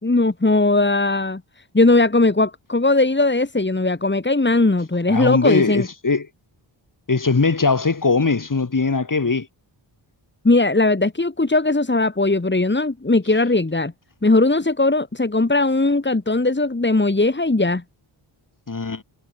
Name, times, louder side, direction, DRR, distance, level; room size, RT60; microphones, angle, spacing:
voice 1, 0.0-1.4 1.7-5.9 10.4-13.9 14.2-17.8, left 2 dB, 20° left, 3.9 m, -18 dB
voice 2, 5.1-6.3 7.1-9.5 18.7-19.0, left 4 dB, 40° left, 5.2 m, -20 dB
cardioid pair, 70°, 49 cm